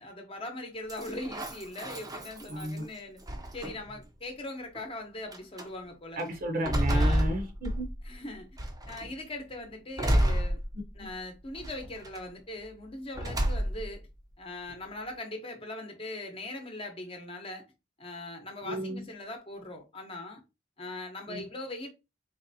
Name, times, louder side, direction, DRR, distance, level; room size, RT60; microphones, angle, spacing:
voice 1, 0.0-3.2 3.5-6.2 6.9-7.4 8.0-8.5 8.9-10.6 10.9-14.0 14.4-17.6 18.0-20.4 20.8-21.9, left 2 dB, 30° left, 0.9 m, -40 dB
sound 1, 0.9-2.8 3.3-4.0 4.7-4.8 5.3-5.7 6.2-8.1 8.6-9.1 10.0-11.1 11.6-12.2 13.1-14.0, equal, 20° right, 0.7 m, -29 dB
voice 2, 2.5-2.8 6.2-7.9 11.0-11.1 18.6-19.0 21.3-21.4, right 1 dB, 50° right, 0.9 m, -33 dB
4.1 x 3.2 x 2.7 m
head